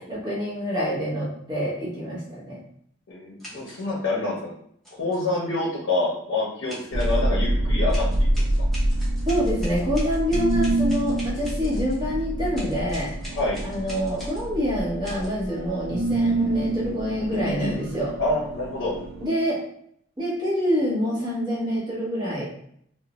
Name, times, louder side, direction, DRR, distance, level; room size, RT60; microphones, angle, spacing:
voice 1, 0.1-2.6 9.3-13.1 13.6-18.1 19.2-19.6 20.2-22.4, equal, 20° right, -8 dB, 1.0 m, -26 dB
voice 2, 3.1-4.5 5.0-8.1 8.4-8.5 13.3-13.6 17.6-17.8 18.2-19.0, left 2 dB, 60° left, -4 dB, 0.6 m, -26 dB
sound 1, 3.4-3.9 4.9-5.2 6.7-7.2 7.9-12.0 12.5-14.5 15.0-15.3, equal, ahead, 0.7 m, -43 dB
sound 2, 6.9-19.3, right 1 dB, 80° right, 0.4 m, -26 dB
2.5 x 2.1 x 2.9 m, 0.68 s
head